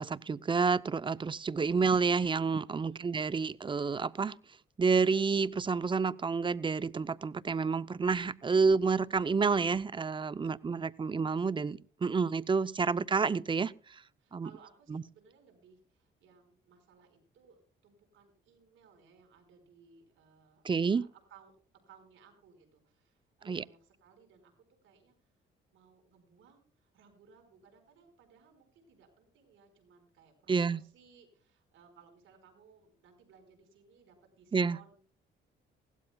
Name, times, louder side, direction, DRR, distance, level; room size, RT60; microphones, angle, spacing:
voice 1, 0.0-4.4 4.8-14.0 14.3-14.5 14.9-15.0 20.6-21.0 23.5-23.6 30.5-30.8 34.5-34.8, right 5 dB, 25° right, 0.6 m, -29 dB
voice 2, 2.8-3.2 10.4-10.8 14.2-24.5 24.8-25.3 25.7-35.1, right 6 dB, 80° right, 5.0 m, -62 dB
20.0 x 16.5 x 2.3 m
cardioid pair, 90°, 20 cm